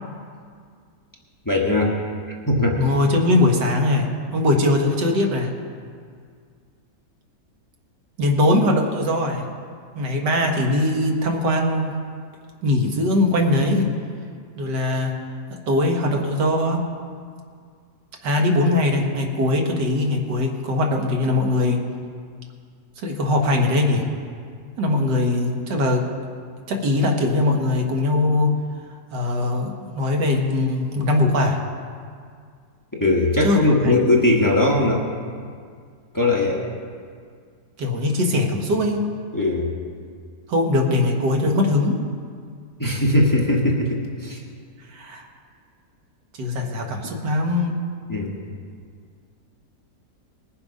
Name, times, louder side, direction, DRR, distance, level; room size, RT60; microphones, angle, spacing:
voice 1, 1.4-2.0 2.5-2.8 33.0-35.0 36.1-36.6 39.3-39.8 42.8-44.4 48.1-48.4, left 2 dB, 15° left, -2 dB, 1.2 m, -19 dB
voice 2, 2.8-5.5 8.2-9.4 9.9-11.9 12.6-13.9 14.6-15.1 15.5-16.8 18.2-21.8 23.0-24.1 24.8-26.1 26.7-28.6 29.1-31.6 33.4-34.0 37.8-39.0 40.5-42.0 44.9-45.3 46.4-47.8, left 2 dB, 85° right, 2 dB, 2.0 m, -21 dB
20.0 x 7.2 x 5.3 m, 2.1 s
omnidirectional pair, 1.8 m